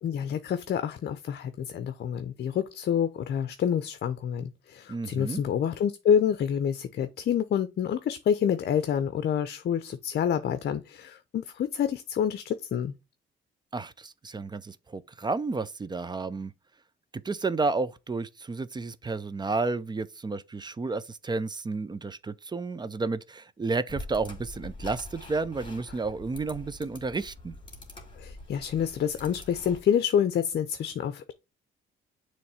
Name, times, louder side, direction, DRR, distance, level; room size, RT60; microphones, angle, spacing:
voice 1, 0.0-12.9 28.2-31.3, left 8 dB, 55° left, 0.6 m, -28 dB
voice 2, 4.9-5.4 13.7-16.5 17.1-27.6, right 3 dB, 20° right, 0.5 m, -31 dB
sound 1, 23.9-29.8, left 2 dB, 25° left, 2.6 m, -44 dB
6.8 x 3.2 x 4.7 m
cardioid pair, 90°, 20 cm